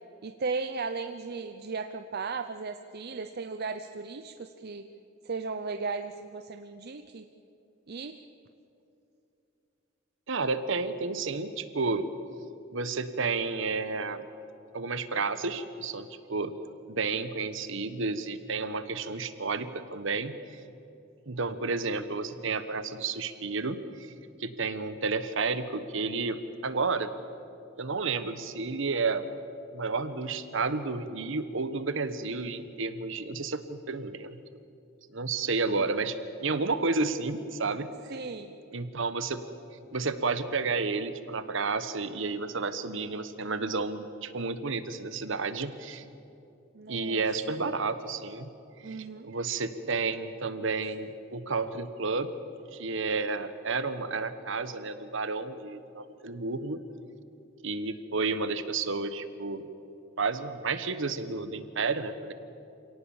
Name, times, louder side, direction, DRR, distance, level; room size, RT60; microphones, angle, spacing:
voice 1, 0.2-4.9 5.2-7.3 7.9-8.2 38.1-38.5 46.7-47.2 48.8-49.3, right 4 dB, 55° right, 8 dB, 0.7 m, -36 dB
voice 2, 10.3-12.1 12.7-14.3 14.7-16.5 16.9-20.4 21.3-24.1 24.4-27.1 27.8-29.3 29.7-34.4 35.1-37.9 38.7-39.4 39.9-46.0 46.9-48.5 48.8-52.3 52.7-56.8 57.6-59.6 60.2-62.3, right 4 dB, 70° right, 11 dB, 1.2 m, -31 dB
27.5 x 18.0 x 7.2 m, 2.8 s
head